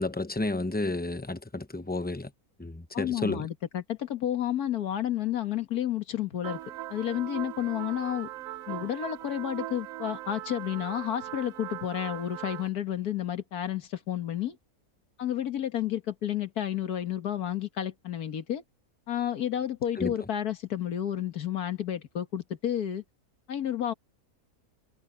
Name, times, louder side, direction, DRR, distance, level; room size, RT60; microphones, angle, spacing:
voice 1, 0.0-2.3 2.6-3.5 20.0-20.1, left 2 dB, 10° left, 0.5 m, -31 dB
voice 2, 2.9-6.6 6.9-8.3 8.7-14.6 15.2-18.6 19.1-23.0 23.5-23.9, left 11 dB, 80° left, 1.9 m, -31 dB
sound 1, 6.4-12.7, right 14 dB, 70° right, 1.0 m, -40 dB
omnidirectional pair, 1.6 m